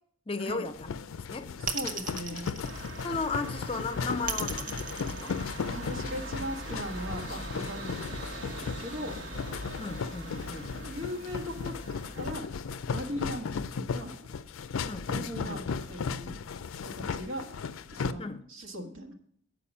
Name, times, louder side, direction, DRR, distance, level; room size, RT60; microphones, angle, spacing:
voice 1, 0.3-0.9 1.3-1.5 3.0-5.4 9.8-10.8 14.8-15.6 18.2-18.5, left 3 dB, 25° left, 0.5 m, -35 dB
sound 1, 0.7-18.1, left 5 dB, 80° left, 0.4 m, -36 dB
voice 2, 1.6-2.5 5.7-9.2 10.8-12.4 12.9-14.2 15.1-16.4 16.8-17.6 17.9-19.1, equal, 75° right, 1.4 m, -39 dB
sound 2, 1.7-3.4 4.3-6.0, right 5 dB, 40° right, 0.7 m, -35 dB
sound 3, 2.6-12.3, right 1 dB, 60° right, 1.3 m, -41 dB
8.5 x 4.8 x 7.0 m
head